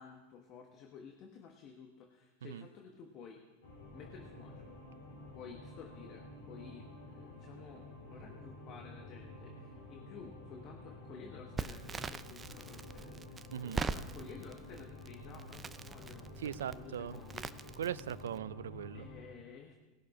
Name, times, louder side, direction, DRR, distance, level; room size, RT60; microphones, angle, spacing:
voice 1, 0.0-3.4 3.9-4.7 5.3-17.5 18.9-19.8, left 6 dB, 45° left, 3 dB, 1.3 m, -53 dB
sound 1, 3.6-19.2, left 2 dB, 75° left, 3.8 m, -51 dB
Crackle, 11.6-18.4, right 4 dB, 20° right, 0.5 m, -43 dB
voice 2, 13.5-13.8 16.4-17.2 17.8-19.1, right 9 dB, 80° right, 18 dB, 0.4 m, -40 dB
19.0 x 6.5 x 4.9 m, 1.1 s
hypercardioid pair, 105°, 0 cm